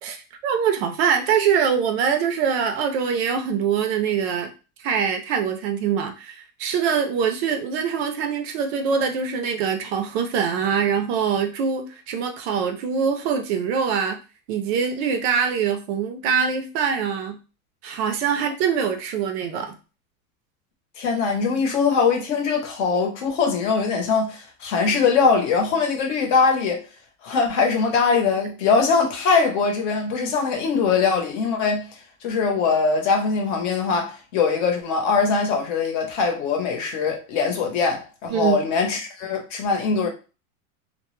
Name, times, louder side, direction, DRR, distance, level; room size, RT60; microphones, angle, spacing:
voice 1, 0.0-4.5 4.8-14.2 14.5-17.4 17.8-19.8 38.3-38.6, right 7 dB, 50° right, 0.4 m, -23 dB
voice 2, 21.0-26.8 27.2-31.8 32.2-40.1, left 5 dB, 55° left, 0.8 m, -22 dB
2.1 x 2.0 x 3.0 m
supercardioid pair, 150°, 44 cm